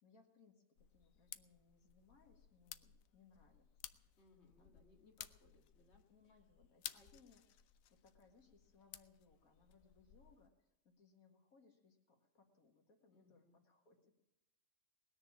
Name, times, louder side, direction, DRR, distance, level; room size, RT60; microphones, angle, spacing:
voice 1, 0.0-3.7 3.9-4.0 4.6-4.8 6.1-7.4 7.9-14.1, left 4 dB, 90° left, 2 dB, 2.4 m, -69 dB
sound 1, 0.8-10.5, left 10 dB, 75° left, 1.1 m, -57 dB
voice 2, 4.2-6.4 6.9-7.2 13.1-13.6, left 3 dB, 50° left, 0 dB, 2.3 m, -69 dB
20.0 x 6.8 x 8.6 m, 0.94 s
omnidirectional pair, 1.5 m